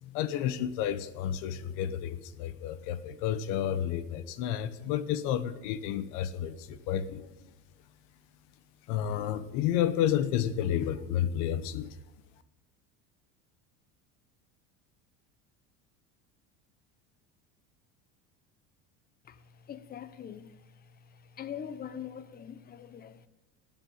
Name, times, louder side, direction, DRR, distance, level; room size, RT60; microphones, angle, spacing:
voice 1, 0.0-7.2 8.9-12.0, left 10 dB, 70° left, 1.1 m, -31 dB
voice 2, 19.3-20.8 21.1-23.3, left 8 dB, 30° left, 0.9 m, -43 dB
18.5 x 7.5 x 8.1 m
supercardioid pair, 130°, 32 cm